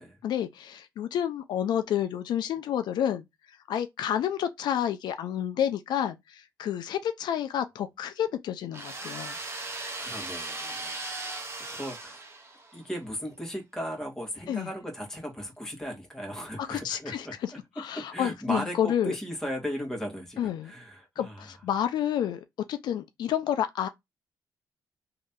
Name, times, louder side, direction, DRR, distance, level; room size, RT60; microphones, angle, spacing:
voice 1, 0.2-3.2 3.7-9.4 14.5-14.7 16.6-19.1 20.4-20.7 21.2-22.4 22.7-23.9, left 10 dB, 75° left, 0.5 m, -30 dB
sound 1, 8.7-12.8, right 2 dB, 35° right, 0.9 m, -38 dB
voice 2, 10.0-12.3 12.7-21.4, equal, 5° left, 1.6 m, -37 dB
3.1 x 2.8 x 3.6 m
cardioid pair, 95°, 7 cm